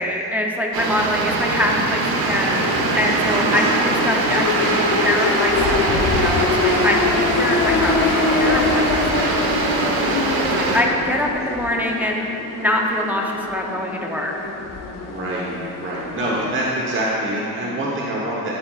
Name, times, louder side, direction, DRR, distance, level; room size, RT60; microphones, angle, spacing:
voice 1, 0.0-9.4 10.5-12.2 12.5-14.3, left 1 dB, 5° right, -1 dB, 0.6 m, -24 dB
sound 1, 0.7-10.8, right 3 dB, 90° right, 1.0 m, -22 dB
sound 2, 1.0-16.9, left 3 dB, 60° left, 0.9 m, -24 dB
voice 2, 3.3-3.6 9.9-10.3 10.7-10.9 15.1-15.5 15.8-18.6, right 1 dB, 35° right, -5 dB, 1.0 m, -26 dB
11.5 x 7.6 x 2.4 m, 2.8 s
cardioid pair, 115°, 36 cm